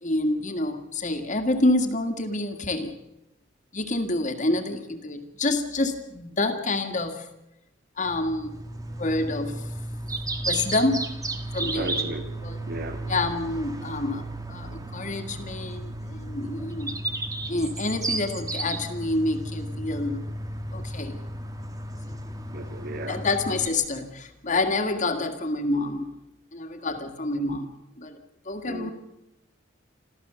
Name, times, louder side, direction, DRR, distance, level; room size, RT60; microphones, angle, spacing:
voice 1, 0.0-2.9 3.7-7.3 8.0-8.6 8.9-9.6 10.5-11.1 11.5-11.9 12.4-12.6 13.1-17.0 17.5-20.3 20.7-21.2 23.1-26.1 26.5-28.2 28.5-28.9, left 2 dB, 40° left, 5 dB, 2.0 m, -27 dB
sound 1, 8.1-23.7, right 2 dB, 20° right, 1.6 m, -34 dB
voice 2, 11.7-12.3 12.7-13.0 22.5-23.2 28.6-28.9, right 2 dB, 55° right, 8 dB, 1.8 m, -34 dB
27.5 x 13.5 x 7.0 m, 0.90 s
head